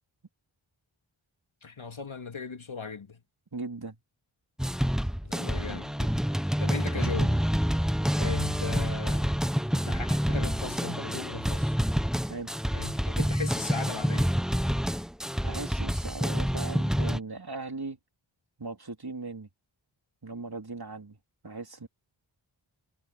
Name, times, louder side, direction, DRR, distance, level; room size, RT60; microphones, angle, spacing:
voice 1, 1.6-3.2 5.2-6.2 6.6-7.5 8.2-9.3 9.7-11.8 12.7-14.3, left 5 dB, 70° left, 2.7 m, -38 dB
voice 2, 3.5-4.0 5.7-5.8 12.3-12.5 15.4-18.0 18.6-19.5 20.2-21.2 21.4-21.9, right 3 dB, 50° right, 3.9 m, -38 dB
sound 1, 4.6-17.2, equal, ahead, 1.0 m, -28 dB
cardioid pair, 40°, 49 cm